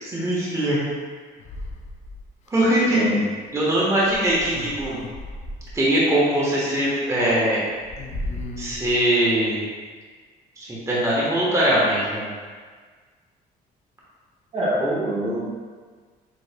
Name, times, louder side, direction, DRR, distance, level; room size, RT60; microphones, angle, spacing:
voice 1, 0.0-0.8 2.5-3.0 3.5-5.0 5.7-7.6 8.6-9.6 10.6-12.3, right 1 dB, 15° right, -7 dB, 1.2 m, -21 dB
sound 1, 1.4-2.5 4.0-5.8 6.6-7.0 7.3-7.4 7.7-9.0, left 1 dB, 45° left, 0.5 m, -35 dB
voice 2, 14.5-15.6, right 1 dB, 40° right, -6 dB, 1.3 m, -24 dB
7.1 x 3.1 x 2.2 m, 1.5 s
cardioid pair, 110°, 17 cm